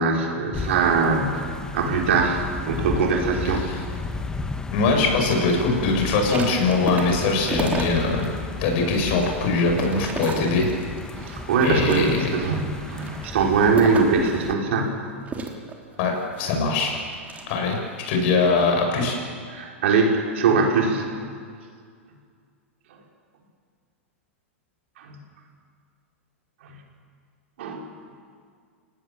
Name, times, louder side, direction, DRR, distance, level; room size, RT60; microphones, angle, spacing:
voice 1, 0.0-3.7 11.2-14.9 19.5-21.1 25.0-25.2 26.6-26.7 27.6-27.9, right 4 dB, 65° right, 0 dB, 5.0 m, -22 dB
sound 1, 0.5-14.5, left 3 dB, 10° left, 1.6 m, -34 dB
voice 2, 3.4-3.8 4.7-8.3 8.6-10.7 11.6-12.3 16.0-17.0 17.5-17.8 18.1-19.2, left 3 dB, 55° left, 2 dB, 7.4 m, -22 dB
sound 2, 6.1-8.3 8.7-11.1 11.5-12.4 12.9-14.3 15.2-17.9 18.4-18.7, right 3 dB, 20° right, 3.3 m, -34 dB
27.5 x 19.0 x 7.7 m, 2.1 s
hypercardioid pair, 110°, 7 cm